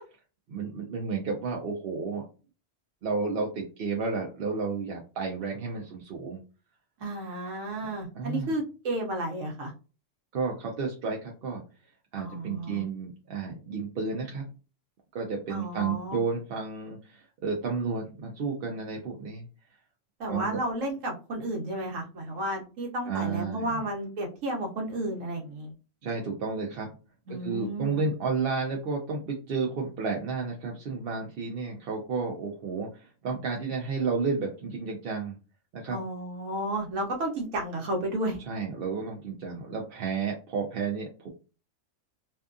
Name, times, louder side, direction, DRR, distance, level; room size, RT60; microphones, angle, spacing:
voice 1, 0.5-2.2 3.0-6.4 8.1-8.5 10.3-11.6 12.1-14.4 15.1-19.5 20.3-20.6 23.1-23.8 26.0-26.9 27.3-35.4 35.7-36.0 38.5-41.3, right 4 dB, 60° right, 0 dB, 0.7 m, -32 dB
voice 2, 7.0-9.7 12.2-12.8 15.5-16.2 20.2-25.7 27.3-28.0 35.9-38.4, right 1 dB, 90° right, 1 dB, 1.1 m, -32 dB
2.6 x 2.3 x 2.4 m, 0.33 s
omnidirectional pair, 1.3 m